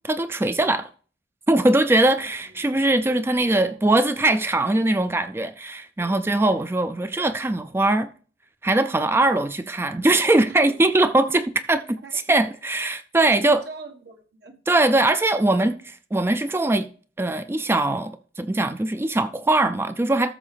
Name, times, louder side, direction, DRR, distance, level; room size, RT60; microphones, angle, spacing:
voice 1, 0.0-0.9 1.5-8.1 8.6-12.0 12.3-13.6 14.7-16.9 17.2-20.3, right 2 dB, 15° right, 0.3 m, -21 dB
voice 2, 2.1-2.8 3.1-3.8 6.0-6.6 10.5-10.7 11.7-12.5 13.4-14.6, right 3 dB, 60° right, 1.6 m, -44 dB
13.5 x 6.3 x 3.4 m
head